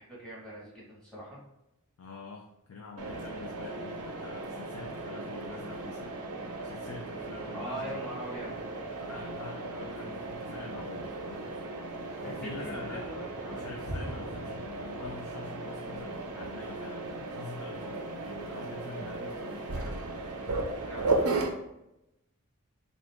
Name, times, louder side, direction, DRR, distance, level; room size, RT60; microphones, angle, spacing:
voice 1, 0.0-1.4 7.5-8.5 12.2-13.7 19.7-20.0 20.8-21.3, equal, 5° left, -8 dB, 1.4 m, -42 dB
voice 2, 2.0-6.2 6.6-8.1 9.0-11.5 12.2-13.1 13.5-19.7, left 3 dB, 70° left, 0 dB, 0.5 m, -45 dB
Mechanisms, 3.0-21.5, right 2 dB, 75° right, 0.6 m, -36 dB
Thunder, 7.6-19.5, left 1 dB, 85° left, 0.9 m, -48 dB
3.7 x 2.5 x 3.4 m, 0.89 s
head